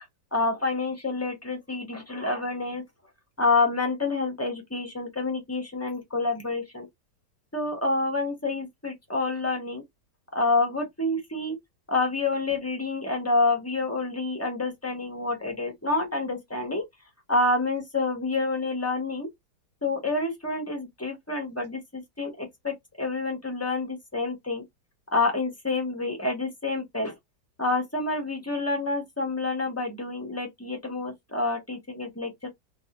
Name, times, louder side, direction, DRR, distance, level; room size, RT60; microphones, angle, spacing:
voice 1, 0.3-2.8 3.4-6.9 7.5-9.8 10.3-11.6 11.9-16.8 17.3-19.3 19.8-24.6 25.1-27.1 27.6-32.5, left 3 dB, 20° left, 0.3 m, -28 dB
2.6 x 2.4 x 2.8 m
omnidirectional pair, 1.8 m